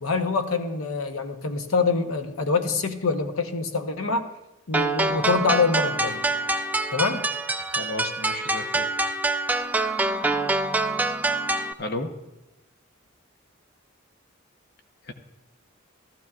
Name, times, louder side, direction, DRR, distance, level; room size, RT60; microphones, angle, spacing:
voice 1, 0.0-4.3 4.7-6.2 6.9-7.2, left 4 dB, 85° left, 6 dB, 0.9 m, -25 dB
sound 1, 4.7-11.7, right 2 dB, 10° right, 0.3 m, -25 dB
voice 2, 7.6-8.9 11.8-12.1 15.0-15.1, left 2 dB, 50° left, 5 dB, 0.9 m, -33 dB
15.0 x 13.5 x 2.4 m, 1.0 s
head